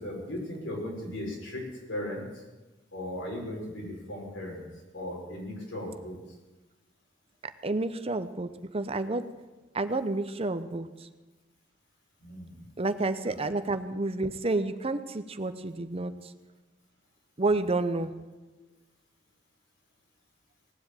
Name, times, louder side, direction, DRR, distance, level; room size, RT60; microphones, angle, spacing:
voice 1, 0.0-2.4 2.9-4.6 4.9-6.2 12.2-12.6 13.3-13.4 17.5-17.6 18.6-18.7, left 1 dB, 85° left, -2 dB, 5.6 m, -37 dB
voice 2, 7.6-9.3 9.7-11.1 12.8-16.1 17.4-18.1, right 2 dB, 30° right, 11 dB, 0.7 m, -30 dB
18.5 x 7.8 x 8.9 m, 1.2 s
head